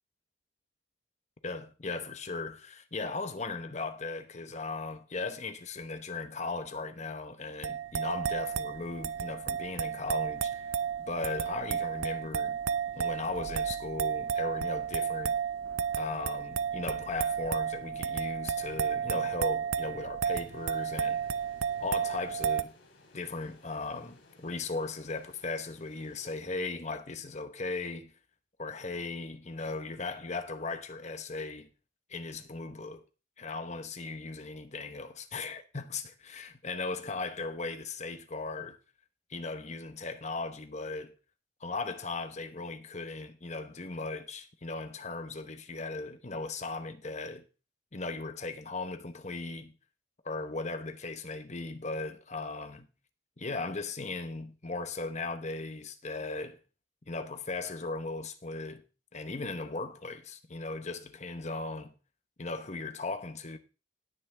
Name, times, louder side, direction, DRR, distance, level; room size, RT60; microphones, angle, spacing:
voice 1, 1.4-10.8 11.1-12.6 13.0-15.4 16.0-21.3 21.8-22.7 23.1-28.1 28.6-31.7 32.1-33.0 33.4-38.8 39.3-41.1 41.6-47.4 47.9-49.7 50.2-52.9 53.4-56.6 57.1-58.8 59.1-61.9 62.4-63.6, left 3 dB, 35° left, 1.0 m, -37 dB
sound 1, 7.6-22.6, right 7 dB, 90° right, 0.5 m, -32 dB
sound 2, 20.3-27.0, left 2 dB, 75° left, 3.2 m, -60 dB
17.0 x 6.3 x 3.5 m
head